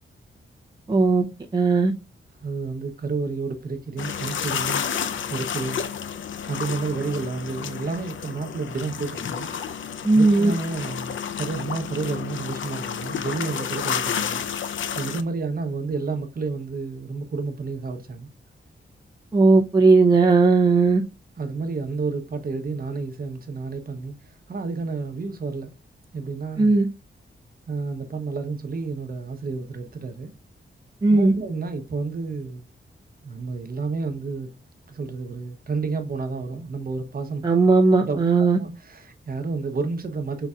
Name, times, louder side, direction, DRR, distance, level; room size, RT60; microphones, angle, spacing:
voice 1, 0.9-1.2 1.5-1.9 10.0-10.5 19.3-21.0 26.6-26.9 31.0-31.3 37.4-38.6, right 3 dB, 20° right, 0.6 m, -17 dB
voice 2, 2.4-4.9 5.3-5.8 6.5-9.5 10.1-14.4 14.9-18.3 21.4-25.7 26.1-26.7 27.7-30.3 31.1-32.7 33.2-34.5 34.9-37.4 38.0-40.5, right 4 dB, 50° right, 0.9 m, -30 dB
sound 1, 4.0-15.2, left 8 dB, 75° left, 0.5 m, -31 dB
5.4 x 3.9 x 2.4 m
wide cardioid pair, 145°, 20 cm